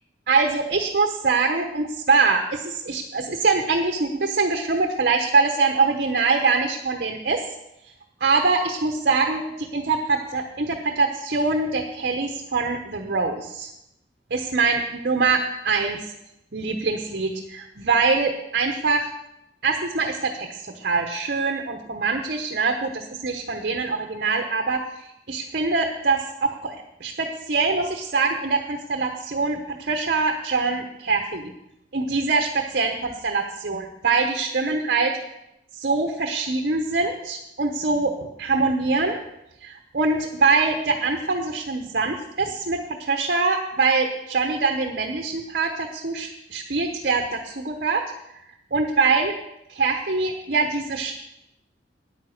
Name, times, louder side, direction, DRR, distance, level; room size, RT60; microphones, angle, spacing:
voice 1, 0.3-7.4 8.2-13.7 14.3-16.1 16.5-19.1 19.6-24.8 25.3-31.5 31.9-35.1 35.7-39.2 39.6-48.0 48.7-49.3 49.7-51.2, right 4 dB, 55° right, 5 dB, 0.9 m, -23 dB
9.4 x 9.3 x 6.4 m, 0.85 s
head